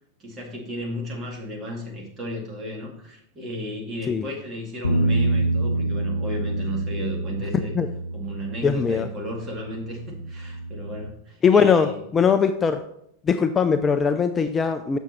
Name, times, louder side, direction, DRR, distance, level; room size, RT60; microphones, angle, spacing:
voice 1, 0.2-7.7 8.1-12.3, left 1 dB, 25° right, 0 dB, 2.2 m, -34 dB
Bass guitar, 4.8-11.1, right 2 dB, 85° left, 0.6 m, -27 dB
voice 2, 8.6-9.1 11.4-12.8 13.3-15.0, left 6 dB, 20° left, 9 dB, 0.4 m, -20 dB
7.3 x 6.2 x 4.3 m, 0.73 s
figure-of-eight pair, 90°, 0 cm